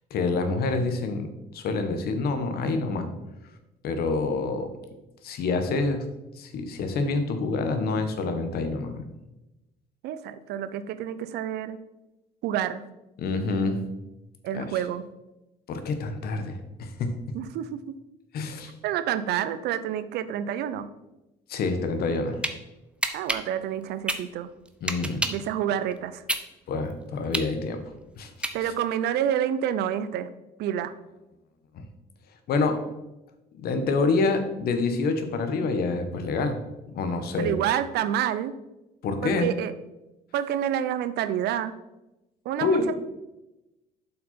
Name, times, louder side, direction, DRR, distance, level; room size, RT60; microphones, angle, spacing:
voice 1, 0.1-1.3 1.5-3.1 3.8-4.7 5.2-6.0 6.4-9.0 13.2-13.8 14.5-14.8 15.7-17.3 18.3-18.7 21.5-22.4 24.8-25.3 26.7-27.8 28.2-28.3 28.6-28.7 31.7-31.8 32.5-32.8 33.5-36.6 36.9-37.6 39.0-39.5 42.6-42.9, left 3 dB, 65° left, 8 dB, 1.2 m, -27 dB
voice 2, 10.0-11.8 12.4-12.8 14.4-15.0 17.3-18.0 18.8-20.9 23.1-24.5 25.3-26.2 28.5-30.3 30.6-30.9 37.4-38.6 39.2-39.7 40.3-41.7 42.4-42.9, right 10 dB, 80° right, 13 dB, 0.6 m, -28 dB
sound 1, 22.0-22.5 23.0-25.5 25.9-28.9, right 1 dB, 5° right, 0.6 m, -30 dB
7.5 x 5.8 x 4.2 m, 0.98 s
cardioid pair, 110°, 17 cm